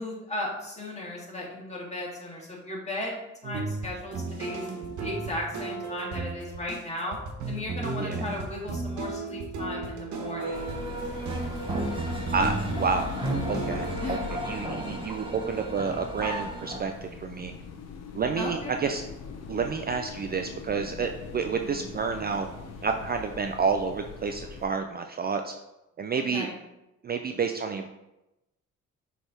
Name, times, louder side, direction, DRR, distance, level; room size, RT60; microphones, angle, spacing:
voice 1, 0.0-3.2 3.4-4.6 5.0-7.2 7.5-10.6 14.0-14.3 18.3-18.9 21.6-21.9 26.2-26.6, left 1 dB, 20° left, -3 dB, 2.0 m, -36 dB
sound 1, 3.4-14.0, right 3 dB, 70° right, 1.1 m, -34 dB
sound 2, 10.1-16.8, right 1 dB, 15° right, 1.2 m, -35 dB
sound 3, 10.5-24.6, left 6 dB, 60° left, 0.7 m, -41 dB
voice 2, 12.3-13.0 13.5-14.2 14.5-17.5 18.1-19.0 19.5-22.5 22.8-25.5 26.0-26.5 27.0-27.9, right 5 dB, 35° right, 5 dB, 0.4 m, -29 dB
6.4 x 3.4 x 4.4 m, 0.95 s
cardioid pair, 90°, 30 cm